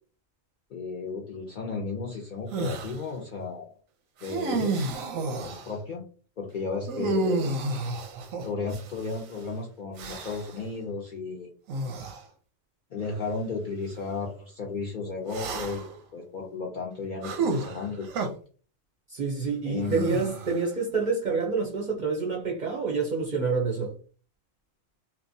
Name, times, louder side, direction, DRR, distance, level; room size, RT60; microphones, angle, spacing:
voice 1, 0.7-3.7 4.2-4.8 5.4-6.0 6.4-7.5 8.4-11.5 12.9-18.1 19.6-20.3, left 4 dB, 65° left, 0.5 m, -34 dB
sound 1, 2.5-3.0 4.2-5.7 6.9-9.2 10.0-10.6 11.7-12.2 13.0-13.2 15.3-16.0 17.2-18.3 19.9-20.7, right 3 dB, 90° right, 1.0 m, -31 dB
voice 2, 19.1-23.9, right 4 dB, 55° right, 0.5 m, -27 dB
2.9 x 2.2 x 2.6 m
omnidirectional pair, 1.3 m